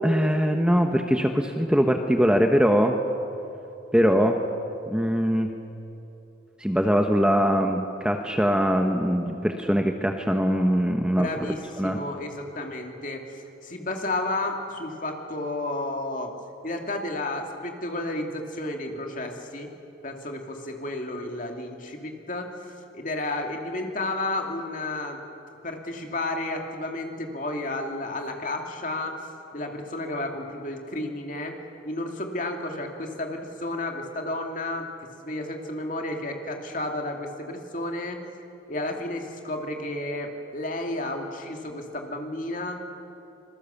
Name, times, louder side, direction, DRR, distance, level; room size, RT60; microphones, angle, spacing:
voice 1, 0.0-2.9 3.9-4.4 4.9-5.5 6.6-12.0, equal, 5° right, 4 dB, 1.0 m, -22 dB
voice 2, 11.1-16.3 16.6-19.7 20.0-22.5 22.9-25.2 25.6-29.2 29.5-31.6 31.8-34.9 35.2-38.2 38.7-42.8, left 2 dB, 40° left, 3 dB, 2.7 m, -32 dB
26.0 x 21.5 x 7.2 m, 2.8 s
head